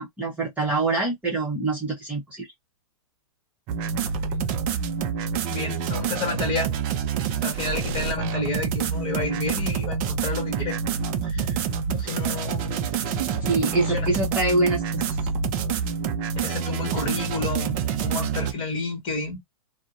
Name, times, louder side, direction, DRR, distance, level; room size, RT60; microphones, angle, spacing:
voice 1, 0.0-2.5 13.4-15.2, right 2 dB, 10° right, 0.9 m, -25 dB
sound 1, 3.7-18.5, right 6 dB, 35° right, 0.4 m, -27 dB
voice 2, 5.5-6.7 7.4-10.8 11.2-11.6 11.9-12.7 13.1-14.1 16.4-19.4, left 3 dB, 30° left, 1.4 m, -30 dB
2.5 x 2.1 x 2.4 m
hypercardioid pair, 140°, 18 cm